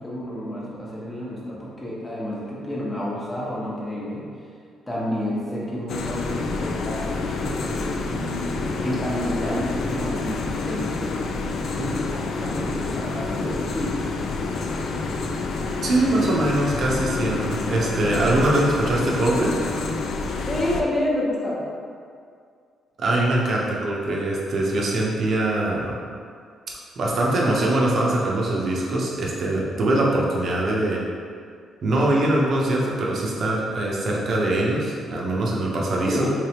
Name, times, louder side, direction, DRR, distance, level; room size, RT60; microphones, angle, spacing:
voice 1, 0.0-4.3 4.9-11.0 11.4-14.1 20.5-21.6 36.1-36.3, left 1 dB, 15° left, -6 dB, 1.0 m, -29 dB
sound 1, 5.9-20.8, left 3 dB, 65° left, 0.3 m, -28 dB
voice 2, 15.8-19.5 23.0-26.0 27.0-31.0 31.8-36.3, right 1 dB, 55° right, -3 dB, 0.7 m, -22 dB
3.3 x 3.3 x 2.9 m, 2.2 s
cardioid pair, 90°, 0 cm